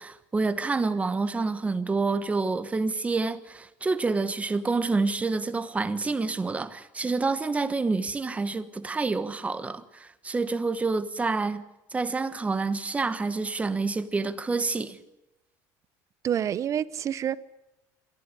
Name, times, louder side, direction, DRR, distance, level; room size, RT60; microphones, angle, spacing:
voice 1, 0.0-11.6 11.9-15.0, right 3 dB, 15° right, 1.2 m, -28 dB
voice 2, 16.2-17.4, right 9 dB, 40° right, 0.8 m, -27 dB
23.0 x 15.0 x 9.8 m
cardioid pair, 130°, 8 cm